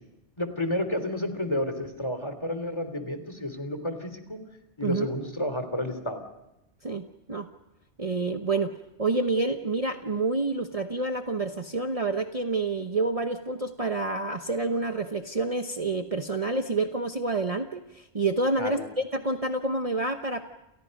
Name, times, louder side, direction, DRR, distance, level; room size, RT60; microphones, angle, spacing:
voice 1, 0.4-4.4 4.8-6.2 18.6-18.8, left 1 dB, 25° left, 8 dB, 3.2 m, -31 dB
voice 2, 6.8-7.5 8.0-8.7 9.0-20.4, right 3 dB, 35° right, 5 dB, 1.1 m, -28 dB
29.5 x 29.5 x 5.4 m, 0.88 s
omnidirectional pair, 1.1 m